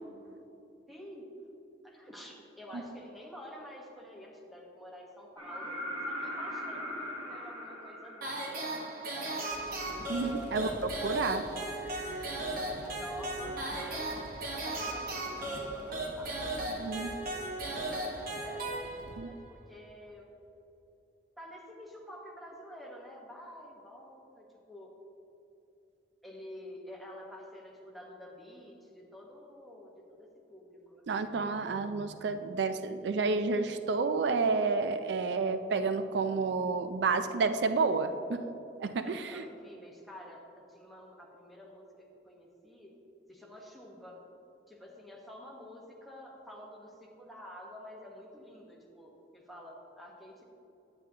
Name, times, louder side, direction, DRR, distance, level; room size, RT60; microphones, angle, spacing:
voice 1, 0.9-1.3 1.8-5.7 6.0-9.5 10.2-11.2 12.8-18.9 19.3-20.2 21.4-24.9 26.2-31.0 39.0-42.9 43.3-44.2 44.7-50.4, equal, ahead, -3 dB, 1.1 m, -49 dB
sound 1, 5.4-9.2 11.1-11.2, equal, 30° right, 1.7 m, -40 dB
sound 2, 8.2-19.3, right 2 dB, 55° right, 1.2 m, -36 dB
sound 3, 9.5-19.2, left 1 dB, 45° left, 0.5 m, -49 dB
voice 2, 10.1-10.7 11.0-11.4 11.9-12.3 16.8-17.1 19.2-19.3 31.1-38.4 38.8-39.4, right 4 dB, 75° right, 9 dB, 0.4 m, -30 dB
9.0 x 8.8 x 2.8 m, 2.9 s
head